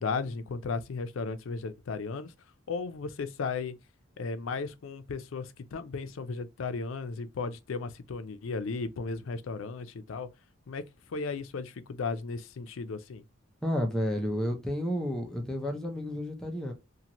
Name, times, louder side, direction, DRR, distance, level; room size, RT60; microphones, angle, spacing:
voice 1, 0.0-2.3 2.7-3.8 4.2-10.3 10.7-13.2, left 4 dB, 85° left, 0.4 m, -35 dB
voice 2, 13.6-16.7, equal, 5° left, 0.6 m, -31 dB
2.7 x 2.5 x 2.9 m
head